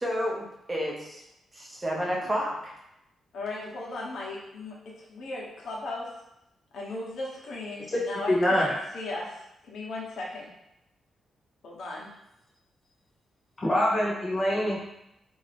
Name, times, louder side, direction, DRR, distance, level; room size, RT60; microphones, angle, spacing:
voice 1, 0.0-1.2 1.8-2.7, equal, 15° right, -3 dB, 0.7 m, -30 dB
voice 2, 3.3-4.7 5.1-6.1 6.7-8.7 8.9-9.3 9.6-10.5 11.6-12.1, left 2 dB, 65° left, -3 dB, 1.0 m, -36 dB
voice 3, 8.3-8.7 13.6-14.8, left 1 dB, 20° left, -4 dB, 1.0 m, -24 dB
4.6 x 2.7 x 3.3 m, 0.85 s
wide cardioid pair, 175°, 0 cm